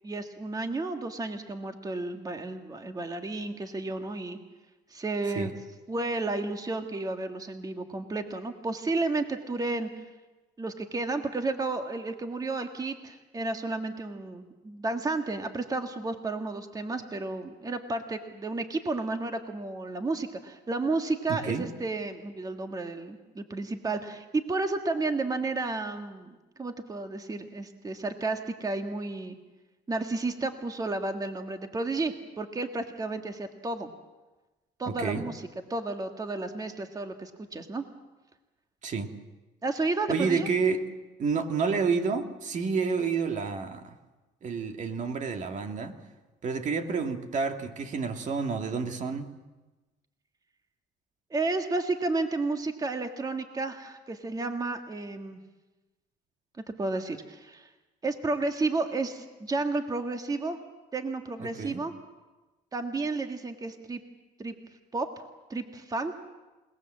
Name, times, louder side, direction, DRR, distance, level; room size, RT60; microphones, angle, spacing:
voice 1, 0.0-4.4 4.9-5.5 5.9-9.9 10.6-29.4 29.9-33.9 34.8-37.8 39.6-40.5 51.3-55.4 56.8-57.7 58.0-60.6 60.9-61.9 62.7-64.0 64.4-64.5 64.9-65.2 65.5-66.2, right 3 dB, 20° right, 6 dB, 1.7 m, -32 dB
voice 2, 21.3-21.7 34.9-35.3 38.8-39.1 40.1-40.8 41.2-44.0 44.4-46.0 46.4-49.3 61.4-61.8, right 5 dB, 45° right, 6 dB, 2.0 m, -29 dB
28.0 x 19.0 x 7.5 m, 1.2 s
cardioid pair, 110°, 17 cm